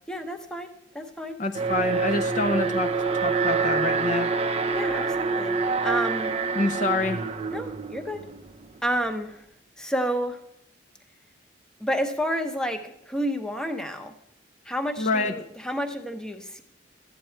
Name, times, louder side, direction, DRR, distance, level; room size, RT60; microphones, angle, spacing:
voice 1, 0.1-0.7 0.9-1.4 4.7-5.6 5.8-6.3 7.5-8.2 8.8-9.4 9.8-10.4 11.8-14.1 14.6-16.6, equal, 5° left, 6 dB, 0.8 m, -30 dB
voice 2, 1.4-2.9 3.1-4.3 6.6-7.2 15.0-15.3, left 3 dB, 40° left, 7 dB, 0.5 m, -26 dB
Alarm, 1.5-8.6, right 4 dB, 30° right, 0.5 m, -26 dB
12.5 x 8.3 x 4.4 m, 0.80 s
head